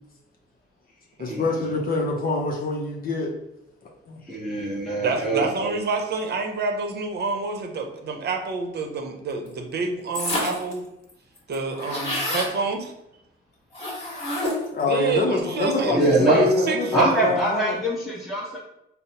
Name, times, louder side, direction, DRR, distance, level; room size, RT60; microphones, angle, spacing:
voice 1, 1.2-3.4 4.1-4.2 14.7-17.8, left 3 dB, 45° left, 0 dB, 0.6 m, -25 dB
voice 2, 4.3-5.7 15.9-16.5 16.9-18.6, right 1 dB, ahead, -5 dB, 0.8 m, -23 dB
voice 3, 5.0-10.8 11.5-12.9 14.9-17.3, right 4 dB, 55° right, 3 dB, 0.7 m, -27 dB
sound 1, 10.1-10.7 11.1-11.2 11.4-12.5 13.7-14.8, left 1 dB, 30° left, 1.4 m, -28 dB
3.9 x 2.0 x 4.1 m, 0.84 s
cardioid pair, 90°, 20 cm